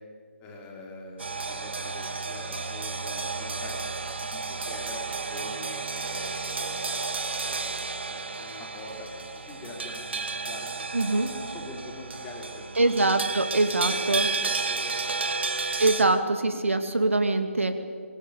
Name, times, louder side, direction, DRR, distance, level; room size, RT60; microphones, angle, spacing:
voice 1, 0.4-12.9 13.9-15.3, left 2 dB, 15° left, 0 dB, 4.5 m, -44 dB
sound 1, 1.2-16.0, right 4 dB, 55° right, 2.6 m, -32 dB
voice 2, 10.9-11.3 12.8-14.3 15.8-17.8, right 2 dB, 70° right, 7 dB, 2.6 m, -23 dB
25.0 x 21.5 x 8.6 m, 2.1 s
figure-of-eight pair, 145°, 7 cm